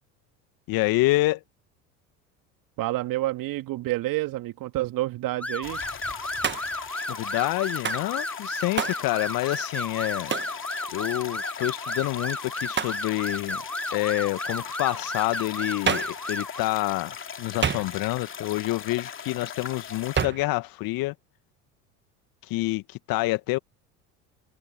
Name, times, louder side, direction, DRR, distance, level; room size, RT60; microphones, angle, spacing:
voice 1, 0.7-1.4 7.1-10.3 10.9-13.6 13.9-21.1 22.4-23.6, left 20 dB, 50° left, 1.9 m, -27 dB
voice 2, 2.8-5.8, right 17 dB, 50° right, 2.5 m, -28 dB
sound 1, 5.4-16.6, left 1 dB, 5° left, 0.8 m, -33 dB
sound 2, 5.6-20.3, left 7 dB, 30° left, 2.7 m, -39 dB
Hands, 6.4-6.9 7.8-8.1 8.8-9.1 10.3-10.6 12.7-13.0 15.9-16.2 17.6-18.2 20.2-20.5, right 7 dB, 25° right, 1.8 m, -28 dB
figure-of-eight pair, 70°, 43 cm